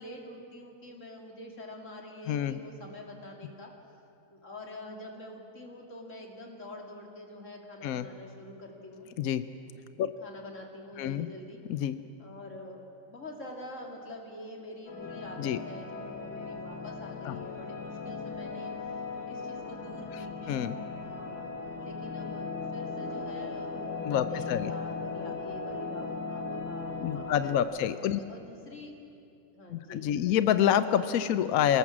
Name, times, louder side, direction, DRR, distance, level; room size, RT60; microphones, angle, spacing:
voice 1, 0.0-3.7 4.3-9.1 10.2-11.6 12.2-20.5 21.0-28.9 29.5-30.5, left 1 dB, 35° left, 1 dB, 3.0 m, -46 dB
voice 2, 2.3-2.6 7.8-8.1 9.2-9.4 10.0-10.1 11.0-11.3 11.7-11.9 15.4-15.6 17.2-17.4 20.5-20.8 24.0-24.7 27.0-28.2 29.7-31.8, left 10 dB, 75° left, 12 dB, 0.8 m, -27 dB
sound 1, 14.9-27.6, left 4 dB, 50° left, 2.5 m, -38 dB
27.0 x 18.5 x 7.3 m, 2.6 s
omnidirectional pair, 2.3 m